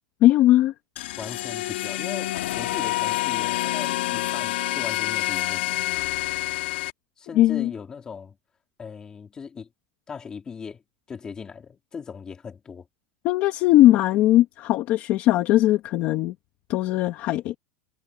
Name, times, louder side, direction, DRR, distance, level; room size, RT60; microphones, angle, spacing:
voice 1, 0.2-0.7 7.3-7.7 13.2-16.3 16.7-17.5, left 15 dB, 30° left, 1.5 m, -19 dB
sound 1, 1.0-6.9, left 16 dB, 75° left, 2.3 m, -27 dB
voice 2, 1.2-5.8 7.2-8.4 8.8-9.7 10.1-10.8 11.1-12.8, left 6 dB, 15° left, 3.0 m, -39 dB
supercardioid pair, 180°, 6 cm